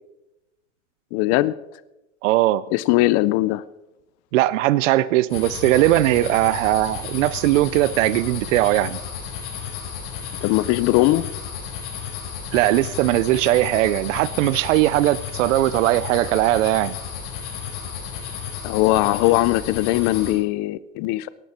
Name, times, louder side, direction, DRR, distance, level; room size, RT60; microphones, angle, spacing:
voice 1, 1.1-1.5 2.7-3.6 10.4-11.3 18.6-21.3, left 17 dB, 45° left, 0.6 m, -20 dB
voice 2, 2.2-2.6 4.3-9.0 12.5-16.9, right 16 dB, 85° right, 0.6 m, -19 dB
sound 1, 5.3-20.3, left 7 dB, 70° left, 4.8 m, -33 dB
18.5 x 12.0 x 4.3 m
supercardioid pair, 135°, 36 cm